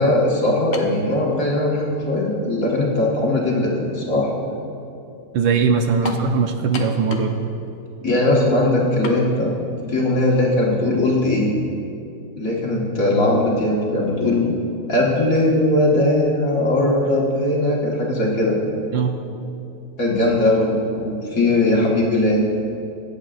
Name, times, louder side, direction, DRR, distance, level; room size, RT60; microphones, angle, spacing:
voice 1, 0.0-4.3 8.0-9.5 9.9-11.5 12.4-14.5 14.9-18.8 20.0-22.4, left 1 dB, 45° left, -4 dB, 1.8 m, -19 dB
sound 1, 0.7-1.0 1.9-2.0 6.0-6.3 6.7-7.4 7.7-7.8 9.0-9.2, left 4 dB, 70° left, 0.6 m, -32 dB
voice 2, 5.3-7.4 18.9-19.1, right 5 dB, 75° right, 5 dB, 1.3 m, -20 dB
22.5 x 8.2 x 2.5 m, 2.7 s
omnidirectional pair, 2.3 m